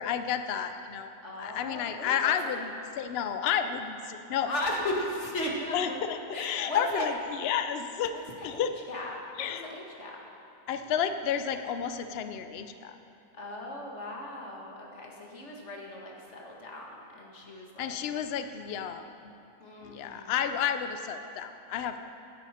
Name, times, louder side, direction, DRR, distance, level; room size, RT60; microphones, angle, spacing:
voice 1, 0.0-1.1 1.4-4.5 5.7-8.1 8.4-8.7 9.4-9.7 10.7-13.0 17.8-19.3 19.8-22.1, left 8 dB, 85° left, 8 dB, 0.5 m, -31 dB
voice 2, 1.2-2.6 4.5-6.0 6.3-7.0 8.4-10.2 13.4-18.0 19.6-20.3, left 1 dB, 45° left, -1 dB, 1.9 m, -37 dB
16.0 x 10.5 x 4.3 m, 2.7 s
omnidirectional pair, 1.8 m